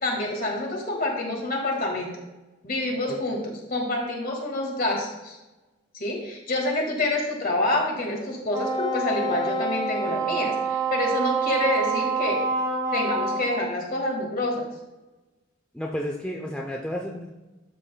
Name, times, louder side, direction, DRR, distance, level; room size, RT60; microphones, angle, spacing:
voice 1, 0.0-2.1 2.6-3.4 3.7-5.4 5.9-12.4 12.9-14.6, left 2 dB, 40° left, 0 dB, 1.9 m, -27 dB
Wind instrument woodwind instrument, 8.5-13.6, right 4 dB, 20° right, 1.5 m, -27 dB
voice 2, 15.7-17.3, equal, 5° left, -1 dB, 0.5 m, -31 dB
12.0 x 7.6 x 2.2 m, 1.1 s
head